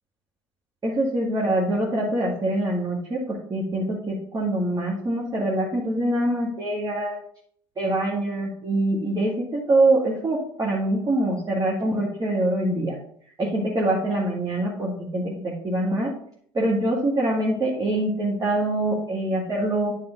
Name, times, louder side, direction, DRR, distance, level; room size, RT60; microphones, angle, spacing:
voice 1, 0.8-7.2 7.8-13.0 13.4-16.2 16.5-19.9, right 1 dB, 30° right, -6 dB, 2.0 m, -24 dB
9.5 x 3.8 x 5.0 m, 0.62 s
figure-of-eight pair, 60°, 13 cm